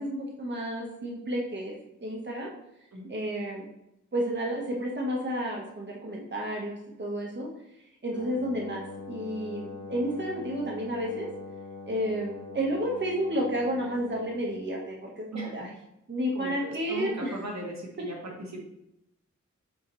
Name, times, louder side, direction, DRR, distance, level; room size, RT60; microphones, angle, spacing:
voice 1, 0.0-1.7 2.0-2.5 3.1-3.6 4.1-7.5 8.0-11.3 11.9-15.7 16.1-17.3, equal, 35° right, -1 dB, 1.3 m, -31 dB
Wind instrument woodwind instrument, 8.1-14.7, left 4 dB, 50° left, 1.1 m, -43 dB
voice 2, 15.3-15.7 16.3-18.2 18.5-18.6, right 1 dB, 60° right, -1 dB, 1.4 m, -37 dB
7.8 x 4.1 x 3.1 m, 0.83 s
wide cardioid pair, 65°, 30 cm